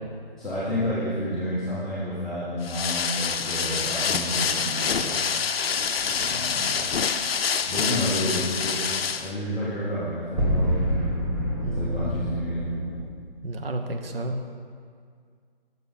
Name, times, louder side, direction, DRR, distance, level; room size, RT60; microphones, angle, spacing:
voice 1, 0.4-5.2 6.2-6.6 7.6-8.8 9.1-10.8 11.7-12.7, equal, ahead, -15 dB, 0.5 m, -30 dB
sound 1, 2.6-9.3, left 6 dB, 75° left, 0.5 m, -26 dB
sound 2, 6.0-7.4 10.3-13.0, equal, 30° right, 1.5 m, -28 dB
voice 2, 11.6-12.3 13.4-14.4, right 1 dB, 70° right, 5 dB, 0.8 m, -31 dB
6.7 x 5.2 x 4.1 m, 2.1 s
figure-of-eight pair, 145°, 30 cm